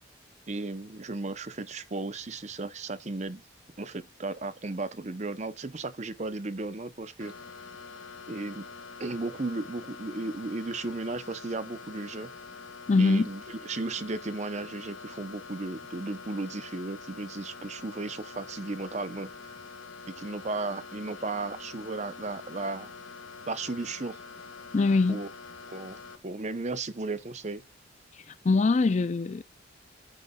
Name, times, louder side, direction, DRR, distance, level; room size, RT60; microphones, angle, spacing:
voice 1, 0.5-3.4 3.8-7.3 8.3-8.7 9.0-12.3 13.0-19.6 20.2-22.9 23.5-24.2 25.1-25.3 25.7-26.0 26.2-27.6, right 3 dB, 35° right, 0.7 m, -35 dB
sound 1, 7.2-26.2, left 4 dB, 80° left, 1.8 m, -45 dB
voice 2, 12.9-13.3 24.7-25.2 28.4-29.4, left 3 dB, 35° left, 0.4 m, -22 dB
9.7 x 8.9 x 2.3 m
head